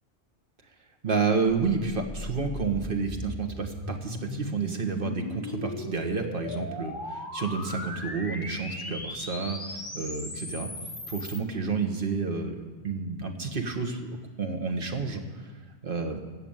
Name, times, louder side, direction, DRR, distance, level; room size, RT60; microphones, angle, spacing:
voice 1, 1.0-10.7 11.1-12.6 12.8-15.2 15.8-16.2, right 4 dB, 50° right, 4 dB, 1.5 m, -30 dB
sound 1, 1.5-11.4, left 1 dB, 20° left, 1.5 m, -38 dB
15.0 x 7.1 x 9.0 m, 1.5 s
omnidirectional pair, 1.2 m